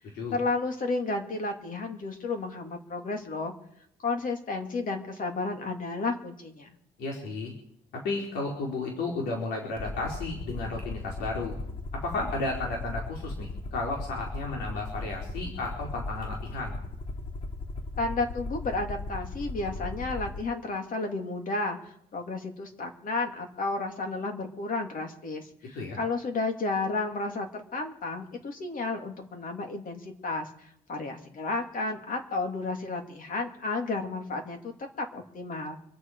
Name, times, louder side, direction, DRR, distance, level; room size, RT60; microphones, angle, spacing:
voice 1, 0.3-3.5 4.0-6.8 18.0-21.8 22.1-34.6 35.0-35.8, left 3 dB, 55° left, 4 dB, 2.9 m, -32 dB
voice 2, 7.0-7.5 7.9-11.5 12.0-16.8 25.7-26.0, left 3 dB, 90° left, -1 dB, 3.7 m, -33 dB
Aircraft, 9.8-20.4, left 2 dB, 35° left, 2.8 m, -37 dB
26.0 x 9.1 x 4.9 m, 0.73 s
cardioid pair, 95°, 17 cm